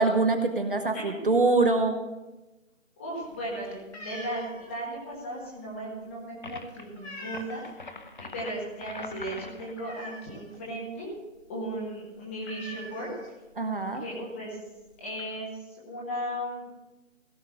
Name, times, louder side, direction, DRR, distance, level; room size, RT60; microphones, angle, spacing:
voice 1, 0.0-2.0 13.6-14.0, right 3 dB, 40° right, 6 dB, 0.9 m, -24 dB
voice 2, 3.0-7.9 8.2-11.1 11.5-13.1 14.0-14.6 15.0-16.7, right 1 dB, 10° left, -4 dB, 1.5 m, -36 dB
sound 1, 3.1-7.9 8.2-8.6 8.8-8.9 9.3-10.7 11.0-11.1 11.4-11.6 11.9-12.0 12.4-13.7 14.4-14.5 14.8-15.2, equal, 55° left, 2.8 m, -45 dB
sound 2, 6.4-6.8 7.3-9.8, left 3 dB, 40° left, 0.9 m, -42 dB
16.5 x 5.5 x 6.9 m, 1.1 s
figure-of-eight pair, 165°, 39 cm